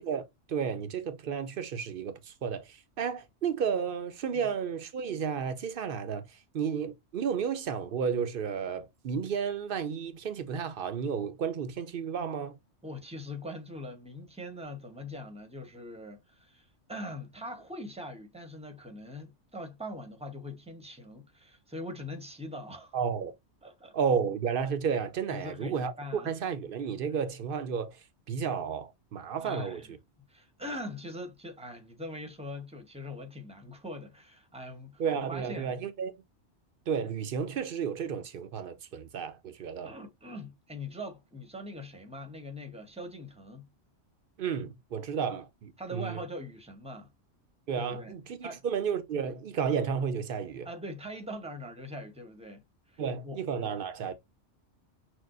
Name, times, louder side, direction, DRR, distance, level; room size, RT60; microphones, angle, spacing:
voice 1, 0.0-12.5 22.9-23.3 23.9-28.0 28.3-29.8 35.0-36.1 36.9-39.9 44.4-46.2 47.7-50.7 53.0-54.1, right 7 dB, 60° right, 0.7 m, -32 dB
voice 2, 12.8-22.9 23.6-23.9 25.3-26.3 29.4-29.9 30.3-35.7 39.8-43.7 45.8-47.1 47.8-48.2 48.4-48.6 50.6-53.7, left 1 dB, 5° right, 0.7 m, -42 dB
6.2 x 2.1 x 2.4 m
omnidirectional pair, 1.3 m